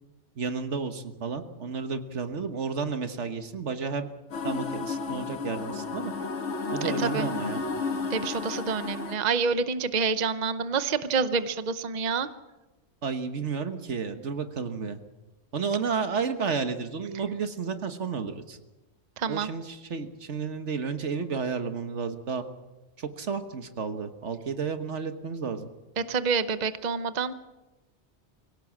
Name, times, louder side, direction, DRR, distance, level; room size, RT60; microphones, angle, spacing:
voice 1, 0.4-4.1 4.4-6.1 6.7-7.6 13.0-15.0 15.5-18.6 19.3-22.5 23.0-25.7, right 5 dB, 80° right, 8 dB, 1.7 m, -32 dB
sound 1, 4.3-9.2, left 4 dB, 85° left, 1.7 m, -32 dB
voice 2, 6.8-7.3 8.1-12.3 19.2-19.5 26.0-27.3, right 5 dB, 40° right, 12 dB, 0.9 m, -27 dB
23.5 x 17.0 x 7.3 m, 1.1 s
omnidirectional pair, 1.2 m